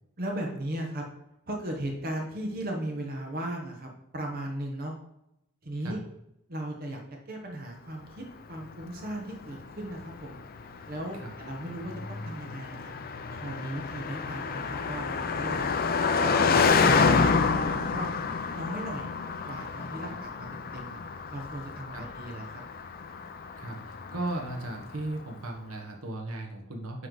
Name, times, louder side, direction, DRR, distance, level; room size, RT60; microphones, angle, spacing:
voice 1, 0.2-1.0 1.5-4.9 5.6-6.0 6.5-7.0 7.3-10.4 10.9-12.9 13.3-15.8 16.2-18.1 18.5-19.1 19.5-21.0 21.3-22.6, right 1 dB, 45° right, 1 dB, 0.9 m, -37 dB
Car passing by, 8.6-25.0, left 5 dB, 40° left, 0.4 m, -29 dB
voice 2, 23.6-27.1, right 2 dB, 75° right, 1 dB, 1.1 m, -36 dB
9.4 x 3.2 x 3.9 m, 0.82 s
head